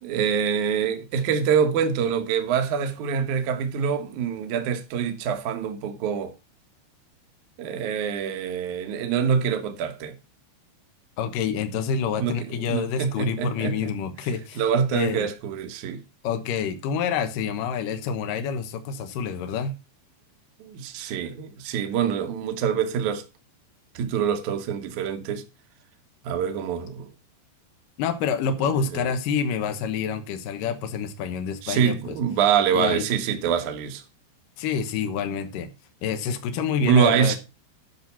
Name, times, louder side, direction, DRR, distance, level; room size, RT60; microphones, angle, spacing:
voice 1, 0.0-6.3 7.6-10.2 12.2-13.9 14.6-16.0 20.6-23.2 23.9-25.4 26.2-27.1 28.9-29.1 31.6-34.0 36.8-37.4, right 7 dB, 65° right, 2.0 m, -25 dB
voice 2, 11.2-14.6 14.9-15.3 16.2-19.7 28.0-32.2 32.7-33.1 34.6-35.7 36.0-37.4, left 7 dB, 70° left, 2.1 m, -27 dB
10.5 x 5.7 x 5.7 m
omnidirectional pair, 5.2 m